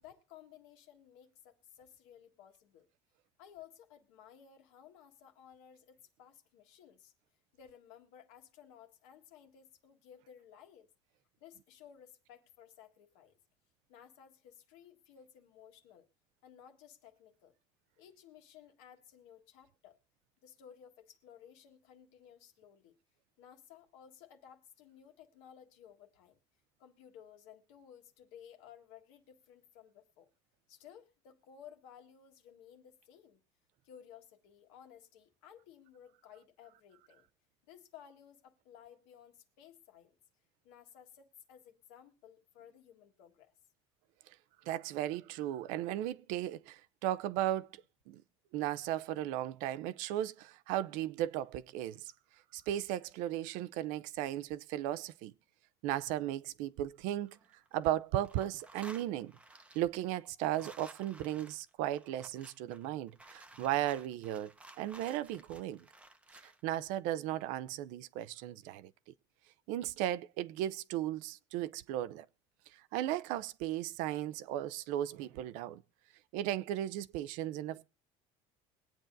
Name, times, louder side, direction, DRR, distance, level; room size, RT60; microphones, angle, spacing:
voice 1, 0.0-2.9 3.4-7.1 7.5-10.9 11.4-13.4 13.9-16.1 16.4-17.5 18.0-20.0 20.4-22.9 23.4-26.4 26.8-30.3 30.7-33.4 33.8-37.3 37.6-40.2 40.6-43.5, left 9 dB, 85° left, 1.7 m, -57 dB
voice 2, 44.7-48.2 48.5-52.1 52.5-55.3 55.8-57.4 57.7-59.3 59.7-64.5 64.8-65.8 66.4-68.9 69.7-72.3 72.7-75.8 76.3-77.8, right 13 dB, 70° right, 0.6 m, -36 dB
sound 1, 57.1-57.9 58.1-66.6, right 2 dB, 10° right, 0.7 m, -55 dB
22.0 x 8.7 x 2.6 m
cardioid pair, 125°, 13 cm